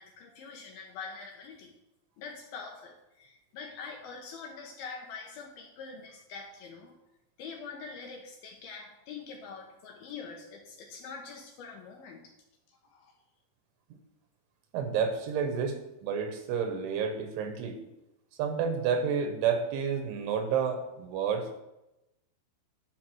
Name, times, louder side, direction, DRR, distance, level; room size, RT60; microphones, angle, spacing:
voice 1, 0.0-1.7 2.2-7.0 7.4-12.3 12.7-13.1, left 5 dB, 70° left, 2 dB, 2.5 m, -44 dB
voice 2, 14.7-17.8 18.4-21.5, right 6 dB, 90° right, 6 dB, 3.7 m, -30 dB
11.0 x 5.3 x 6.2 m, 0.92 s
omnidirectional pair, 5.3 m